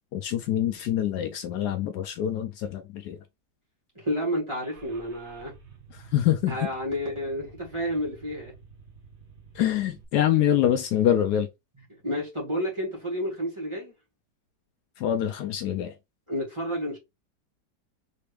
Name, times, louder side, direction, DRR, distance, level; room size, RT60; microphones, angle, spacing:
voice 1, 0.1-3.2 6.1-6.7 9.6-11.5 15.0-15.9, left 11 dB, 75° left, 1.1 m, -25 dB
voice 2, 4.0-5.5 6.5-8.5 11.9-13.9 16.3-17.0, equal, 15° right, 1.9 m, -30 dB
Car / Engine starting, 4.6-10.0, right 5 dB, 45° right, 1.2 m, -51 dB
4.4 x 3.3 x 3.3 m
omnidirectional pair, 1.9 m